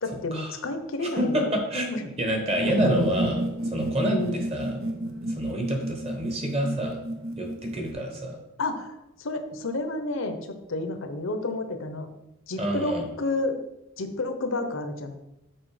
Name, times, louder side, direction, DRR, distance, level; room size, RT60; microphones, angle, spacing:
voice 1, 0.0-1.5 1.9-2.1 2.8-2.9 4.1-4.5 8.6-10.4 10.7-12.1 12.5-13.6 14.0-15.2, left 2 dB, 65° left, 7 dB, 0.7 m, -30 dB
voice 2, 1.0-4.8 5.3-7.0 7.4-8.4 12.6-13.1, equal, 30° right, 2 dB, 1.1 m, -28 dB
sound 1, 2.5-7.9, right 1 dB, 70° right, 0.8 m, -30 dB
6.2 x 4.2 x 4.8 m, 0.90 s
head